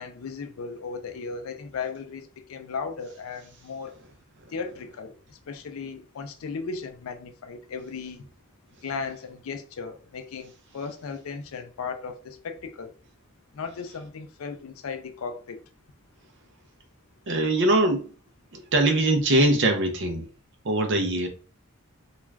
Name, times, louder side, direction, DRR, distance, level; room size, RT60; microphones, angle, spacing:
voice 1, 0.0-4.0 4.5-8.3 8.8-12.9 13.5-15.6, left 5 dB, 70° left, 0.4 m, -36 dB
voice 2, 17.3-18.0 18.5-20.3 20.6-21.3, right 2 dB, 55° right, 0.5 m, -22 dB
2.4 x 2.3 x 3.2 m
head